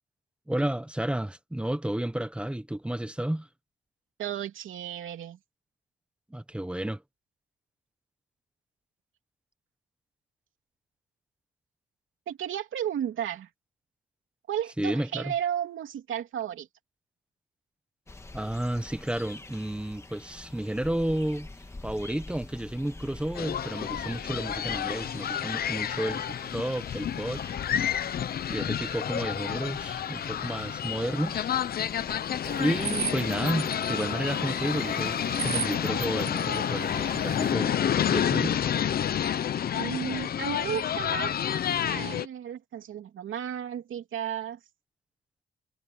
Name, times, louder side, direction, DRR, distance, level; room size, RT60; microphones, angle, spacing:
voice 1, 0.5-3.5 6.3-7.0 14.8-15.3 18.3-21.5 21.8-27.4 28.5-31.5 32.6-37.8 38.1-38.6, right 1 dB, 5° right, 0.9 m, -31 dB
voice 2, 4.2-5.4 12.3-13.5 14.5-16.7 39.8-41.5 41.9-44.6, right 10 dB, 85° right, 3.0 m, -33 dB
sound 1, 18.1-33.6, left 2 dB, 15° left, 1.8 m, -47 dB
sound 2, 23.4-42.3, left 9 dB, 50° left, 0.7 m, -29 dB
sound 3, 32.4-37.5, right 9 dB, 40° right, 0.5 m, -37 dB
wide cardioid pair, 170°, 20 cm